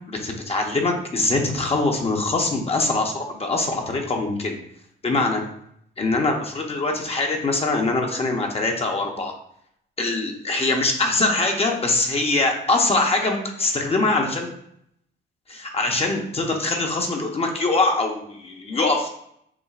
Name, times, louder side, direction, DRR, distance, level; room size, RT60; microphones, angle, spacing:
voice 1, 0.1-4.6 5.0-5.4 6.0-9.3 10.0-14.5 15.5-19.1, left 2 dB, 30° left, 1 dB, 0.8 m, -23 dB
7.1 x 2.5 x 2.4 m, 0.71 s
cardioid pair, 90°, 20 cm